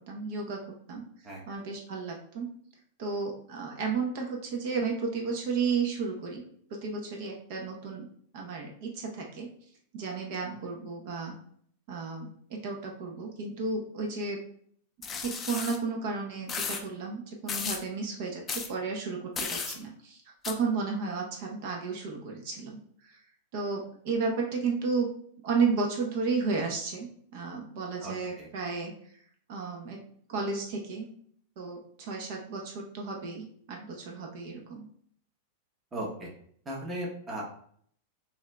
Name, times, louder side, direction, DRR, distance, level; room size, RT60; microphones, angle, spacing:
voice 1, 0.1-0.6 0.9-1.1 1.5-2.5 3.0-6.4 6.7-8.1 8.3-9.5 9.9-11.3 11.9-14.4 15.2-22.8 23.0-23.2 23.5-25.1 25.4-28.9 29.5-30.0 30.3-31.1 31.6-34.9, right 4 dB, 50° right, 1 dB, 0.8 m, -33 dB
sound 1, 15.0-15.8 16.5-16.8 17.5-17.8 18.5-18.7 19.4-19.8 20.4-20.5, left 5 dB, 20° left, 0.4 m, -34 dB
voice 2, 28.0-28.5 35.9-36.3 36.6-37.5, right 1 dB, 15° right, -3 dB, 0.9 m, -36 dB
6.9 x 2.5 x 2.2 m, 0.62 s
supercardioid pair, 160°, 0 cm